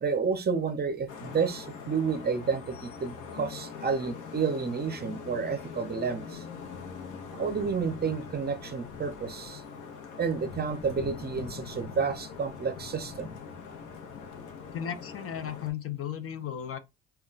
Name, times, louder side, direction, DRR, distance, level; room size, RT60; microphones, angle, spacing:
voice 1, 0.0-6.4 7.3-9.6 10.2-13.3, right 5 dB, 35° right, 0.6 m, -30 dB
Vehicle horn car horn honking / Traffic noise roadway noise, 1.1-15.7, left 6 dB, 80° left, 0.7 m, -42 dB
voice 2, 14.7-16.8, left 9 dB, 50° left, 0.5 m, -35 dB
2.2 x 2.2 x 3.8 m
cardioid pair, 90°, 30 cm